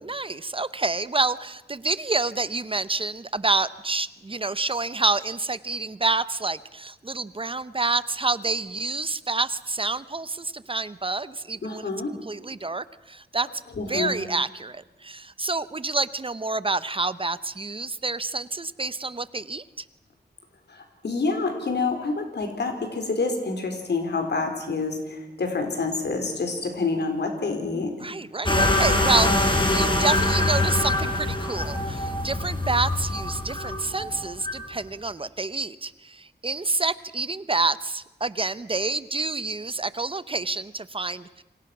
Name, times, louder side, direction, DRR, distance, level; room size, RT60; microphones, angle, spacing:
voice 1, 0.0-11.9 12.3-13.5 13.9-19.8 28.0-41.4, right 3 dB, 30° right, 16 dB, 0.8 m, -28 dB
voice 2, 11.6-12.1 13.8-14.1 20.7-27.9, left 3 dB, 85° left, 5 dB, 4.4 m, -27 dB
sound 1, 28.5-34.6, left 1 dB, 30° left, 4.4 m, -24 dB
28.5 x 25.5 x 6.1 m, 1.0 s
wide cardioid pair, 85°, 17 cm